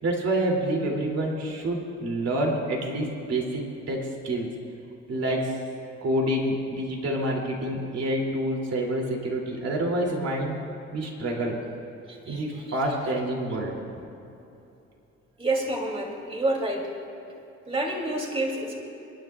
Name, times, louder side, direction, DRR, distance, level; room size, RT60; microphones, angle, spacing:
voice 1, 0.0-4.5 5.1-5.6 6.0-10.6 10.9-11.6 12.2-13.7, right 1 dB, 55° right, -1 dB, 2.9 m, -27 dB
voice 2, 12.1-12.4 15.4-16.9 17.7-18.7, right 2 dB, 20° right, -1 dB, 2.9 m, -28 dB
28.5 x 10.5 x 2.4 m, 2.9 s
cardioid pair, 90°, 30 cm